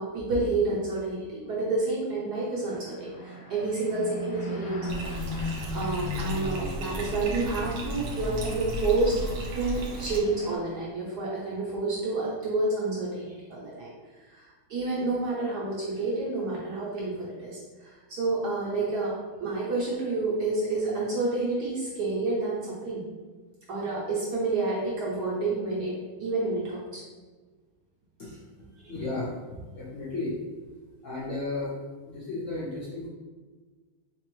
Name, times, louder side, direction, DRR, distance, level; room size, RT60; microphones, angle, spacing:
voice 1, 0.0-9.2 9.5-23.1 23.7-27.0 28.8-28.9, right 3 dB, 65° right, -6 dB, 1.1 m, -29 dB
sound 1, 2.4-10.6, left 2 dB, 30° left, 0.8 m, -37 dB
Bathtub (filling or washing), 4.9-10.2, right 1 dB, 85° right, 1.4 m, -35 dB
voice 2, 28.9-29.3 29.7-30.4 31.0-31.7 32.1-33.1, left 2 dB, 60° left, -7 dB, 0.8 m, -33 dB
3.5 x 3.3 x 3.0 m, 1.4 s
omnidirectional pair, 2.3 m